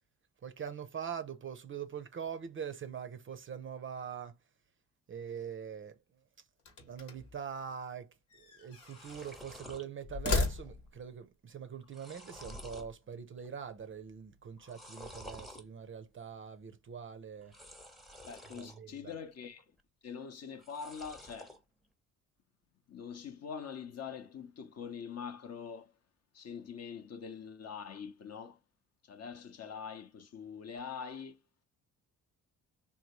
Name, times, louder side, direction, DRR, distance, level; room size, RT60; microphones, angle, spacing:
voice 1, 0.4-4.3 5.1-6.0 6.9-8.1 8.4-17.6 18.5-19.1, right 7 dB, 30° right, 0.5 m, -43 dB
sound 1, 6.6-7.4 8.3-9.4 10.0-11.1, left 4 dB, 80° left, 1.2 m, -36 dB
sound 2, 8.3-8.4 8.6-9.9 10.3-10.7 11.0-11.1 11.6-12.9 13.4-13.8 14.6-15.6 17.4-18.8 19.2-19.8 20.5-21.6, equal, ahead, 0.8 m, -51 dB
voice 2, 18.2-19.6 20.0-21.5 22.9-25.9 26.3-28.6 29.0-31.4, left 6 dB, 40° left, 0.7 m, -44 dB
3.4 x 2.2 x 2.9 m
hypercardioid pair, 50°, 39 cm